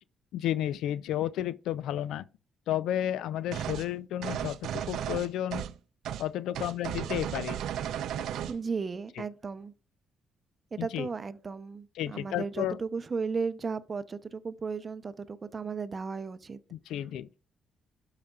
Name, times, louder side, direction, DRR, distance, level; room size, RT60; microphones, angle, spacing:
voice 1, 0.3-2.2 2.7-5.7 6.2-7.6 9.2-9.3 10.8-11.1 12.0-12.8 16.7-17.3, left 12 dB, 85° left, 0.4 m, -32 dB
sound 1, 3.5-3.9 4.2-5.8 6.0-6.2 6.5-8.6, right 10 dB, 80° right, 0.5 m, -34 dB
voice 2, 8.5-9.7 10.7-16.6, right 5 dB, 35° right, 0.6 m, -35 dB
12.0 x 4.9 x 2.3 m
cardioid pair, 90°, 0 cm